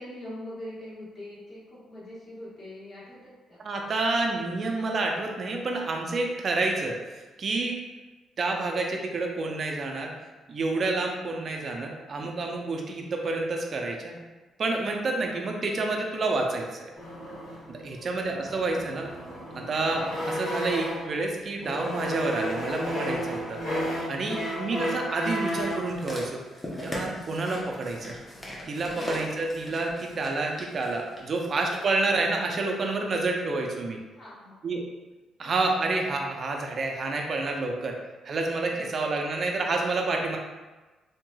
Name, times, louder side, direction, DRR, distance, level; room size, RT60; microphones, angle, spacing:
voice 1, 0.0-3.6 17.8-18.1 31.4-31.5 33.8-34.5, left 1 dB, 45° left, -8 dB, 1.3 m, -44 dB
voice 2, 3.6-7.8 8.4-10.1 10.5-14.2 14.6-16.9 17.7-19.1 19.5-23.6 24.1-26.4 26.8-28.1 28.7-34.0 34.6-34.8 35.4-38.0 38.3-40.4, right 3 dB, 45° right, 1 dB, 0.5 m, -29 dB
sound 1, 17.0-21.2 21.6-25.9, equal, 65° left, 1.5 m, -33 dB
sound 2, 25.5-31.9 32.6-32.7, left 1 dB, 20° left, 0.8 m, -39 dB
3.0 x 2.8 x 2.2 m, 1.2 s
cardioid pair, 90°, 0 cm